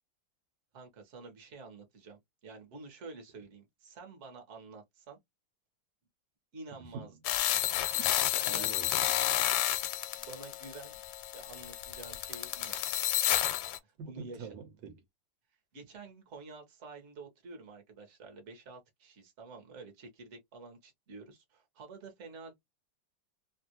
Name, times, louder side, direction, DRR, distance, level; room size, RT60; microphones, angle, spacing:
voice 1, 0.7-5.2 6.5-7.1 8.4-8.7 9.2-9.4 10.1-11.0 11.3-12.8 13.8-14.5 15.7-22.5, right 3 dB, 45° right, 1.2 m, -49 dB
voice 2, 6.8-7.1 7.9-8.1 8.5-9.2 14.0-15.0, right 5 dB, 80° right, 1.5 m, -45 dB
sound 1, 7.2-13.8, left 13 dB, 85° left, 1.3 m, -31 dB
3.2 x 2.4 x 2.7 m
omnidirectional pair, 2.0 m